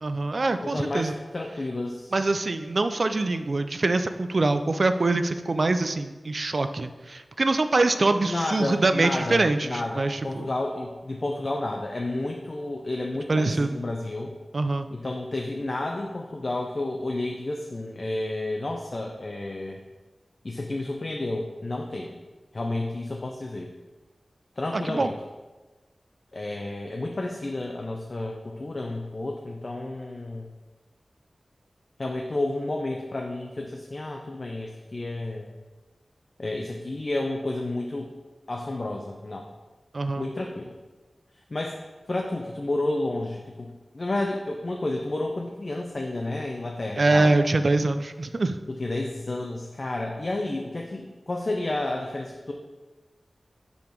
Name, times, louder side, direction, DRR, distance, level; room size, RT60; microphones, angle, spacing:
voice 1, 0.0-1.1 2.1-10.4 13.3-13.7 14.5-14.9 24.7-25.1 39.9-40.2 47.0-48.6, right 2 dB, 55° right, 9 dB, 0.4 m, -24 dB
voice 2, 0.6-2.1 8.2-14.3 14.9-19.9 20.4-22.2 22.5-23.7 24.6-25.1 26.3-30.5 32.0-35.5 36.4-38.1 38.5-39.5 40.2-40.7 41.5-41.8 42.1-47.4 48.7-52.5, left 2 dB, 50° left, 1 dB, 0.5 m, -31 dB
5.3 x 4.9 x 4.5 m, 1.2 s
wide cardioid pair, 80°, 0 cm